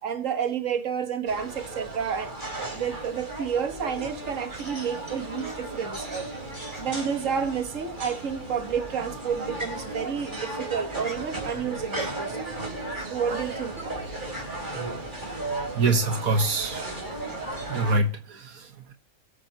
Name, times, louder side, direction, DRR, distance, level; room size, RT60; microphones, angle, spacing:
voice 1, 0.0-6.3 6.8-12.6 13.0-14.0, right 7 dB, 65° right, 1.8 m, -30 dB
sound 1, 1.3-18.0, right 2 dB, 35° right, 4.3 m, -35 dB
Fowl, 3.9-17.5, equal, 10° right, 5.8 m, -49 dB
voice 2, 15.7-16.9 17.7-18.9, right 2 dB, 80° right, 1.8 m, -25 dB
23.0 x 8.5 x 2.8 m
omnidirectional pair, 1.5 m